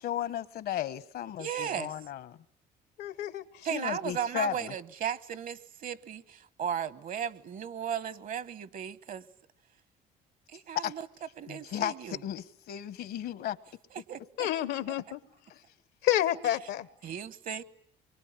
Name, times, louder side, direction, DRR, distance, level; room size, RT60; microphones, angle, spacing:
voice 1, 0.0-2.4 3.7-4.7 10.7-10.9 11.5-13.6, left 11 dB, 65° left, 1.0 m, -34 dB
voice 2, 1.4-1.9 3.6-5.6 5.8-6.2 6.6-9.2 10.7-11.1 11.4-12.2 14.1-14.5 17.0-17.6, right 8 dB, 55° right, 1.1 m, -35 dB
voice 3, 3.0-3.7 14.4-15.2 16.0-16.9, left 12 dB, 80° left, 1.1 m, -29 dB
25.0 x 23.0 x 9.6 m
cardioid pair, 110°, 17 cm